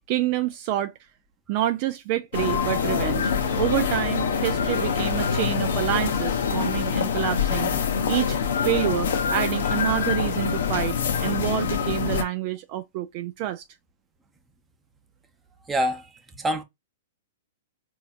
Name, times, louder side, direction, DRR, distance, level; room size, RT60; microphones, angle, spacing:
voice 1, 0.1-0.9 1.5-8.4 8.6-13.6, right 13 dB, 45° right, 0.3 m, -28 dB
sound 1, 2.3-12.2, left 6 dB, 70° left, 0.7 m, -25 dB
voice 2, 15.7-16.1 16.3-16.6, equal, 10° right, 0.8 m, -25 dB
4.2 x 2.7 x 2.3 m
hypercardioid pair, 125°, 0 cm